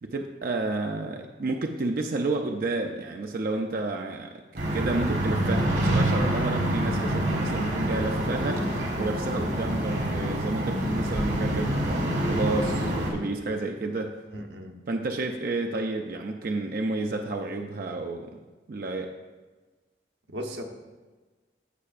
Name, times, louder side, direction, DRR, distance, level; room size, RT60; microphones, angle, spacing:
voice 1, 0.0-4.4 4.7-14.2 14.9-18.4 18.7-19.1, right 2 dB, 50° right, 3 dB, 0.4 m, -31 dB
sound 1, 4.6-13.1, right 1 dB, 70° right, 1.8 m, -26 dB
voice 2, 14.3-14.8 20.3-20.6, equal, 85° right, 3 dB, 0.9 m, -36 dB
15.0 x 5.6 x 2.5 m, 1.3 s
head